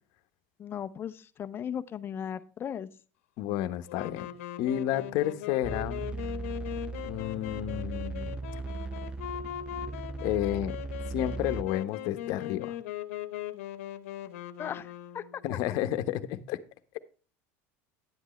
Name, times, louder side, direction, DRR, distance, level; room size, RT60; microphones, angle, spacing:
voice 1, 0.6-2.9 14.6-15.4, left 8 dB, 30° left, 11 dB, 0.7 m, -37 dB
voice 2, 3.4-4.3 4.6-6.1 7.0-8.3 10.2-10.8 11.1-12.8 15.4-16.6, left 12 dB, 65° left, 11 dB, 1.0 m, -31 dB
Wind instrument woodwind instrument, 3.9-15.6, left 12 dB, 90° left, 0.9 m, -40 dB
sound 1, 5.6-11.6, right 3 dB, 15° right, 0.5 m, -38 dB
10.5 x 8.1 x 3.1 m, 0.36 s
supercardioid pair, 120°, 7 cm